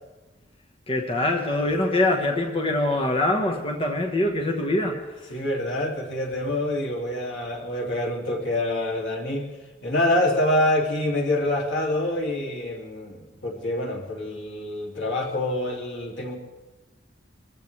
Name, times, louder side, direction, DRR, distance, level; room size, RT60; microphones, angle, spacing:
voice 1, 0.9-5.3, left 1 dB, 30° left, 2 dB, 1.2 m, -24 dB
voice 2, 5.3-9.5 9.8-16.4, left 1 dB, 85° left, -1 dB, 2.5 m, -26 dB
23.0 x 14.5 x 3.3 m, 1.2 s
head